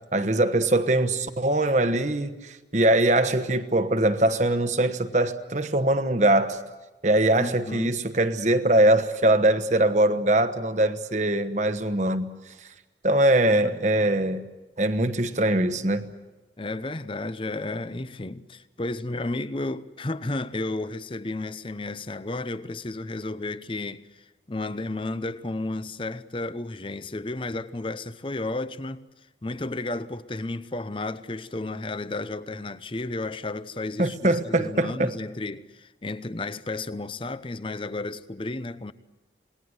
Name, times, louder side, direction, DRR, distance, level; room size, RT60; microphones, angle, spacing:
voice 1, 0.1-6.6 7.0-12.3 13.0-14.4 14.8-16.1 34.0-35.1, right 1 dB, 40° right, 1.2 m, -22 dB
voice 2, 7.4-8.0 13.5-13.8 16.6-24.1 24.5-29.0 29.4-38.9, left 2 dB, 30° left, 0.7 m, -32 dB
27.5 x 20.0 x 8.0 m
head